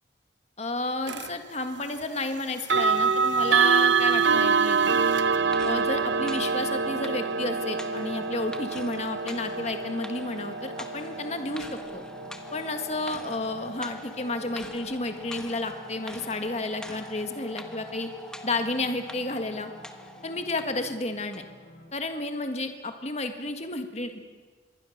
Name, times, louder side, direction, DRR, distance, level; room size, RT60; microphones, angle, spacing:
voice 1, 0.6-5.0 5.6-12.0 12.5-18.1 18.4-19.7 20.2-21.4 21.9-24.3, left 2 dB, 35° left, 7 dB, 1.7 m, -31 dB
sound 1, 1.1-1.3 2.6-13.5, right 5 dB, 80° right, 1.0 m, -26 dB
sound 2, 2.8-21.9, equal, 65° left, 5.9 m, -50 dB
sound 3, 5.0-20.9 21.3-21.4, left 1 dB, 5° left, 1.4 m, -45 dB
26.0 x 22.5 x 6.6 m, 1.4 s
head